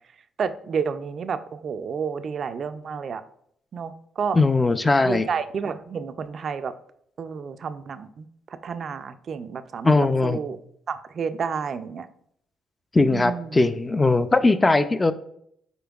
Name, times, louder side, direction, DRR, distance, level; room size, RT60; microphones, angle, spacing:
voice 1, 0.4-3.2 3.7-4.4 5.0-6.7 7.2-8.3 8.6-10.0 10.2-10.6 10.9-12.1 13.1-13.6, right 6 dB, 50° right, 11 dB, 0.3 m, -30 dB
voice 2, 4.3-5.3 9.8-10.4 12.9-15.1, left 3 dB, 20° left, 12 dB, 0.3 m, -19 dB
5.1 x 4.4 x 2.3 m, 0.68 s
cardioid pair, 90°, 0 cm